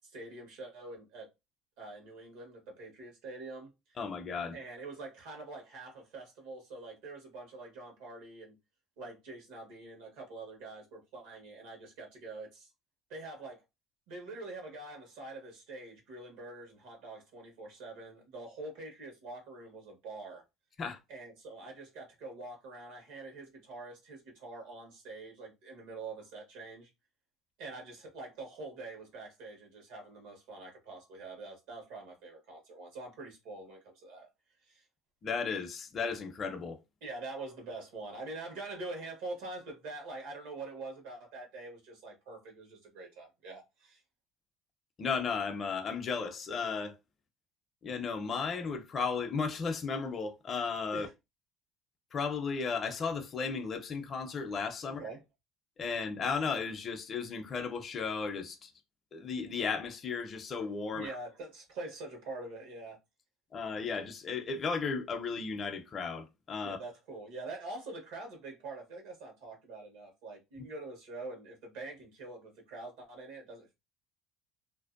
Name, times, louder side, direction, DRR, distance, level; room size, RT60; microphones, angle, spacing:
voice 1, 0.0-1.3 1.8-3.7 4.5-8.5 9.0-12.7 13.1-13.6 14.1-20.4 21.1-26.9 27.6-34.3 34.7-34.8 37.0-44.0 50.9-51.1 55.0-55.2 60.9-63.0 66.6-73.7, right 2 dB, 80° right, 1.1 m, -45 dB
voice 2, 4.0-4.6 20.8-21.0 35.2-36.8 45.0-47.0 47.8-51.1 52.1-55.0 55.8-58.7 59.1-61.1 63.5-66.8, left 5 dB, 35° left, 0.5 m, -35 dB
2.6 x 2.1 x 2.4 m
supercardioid pair, 100°, 0 cm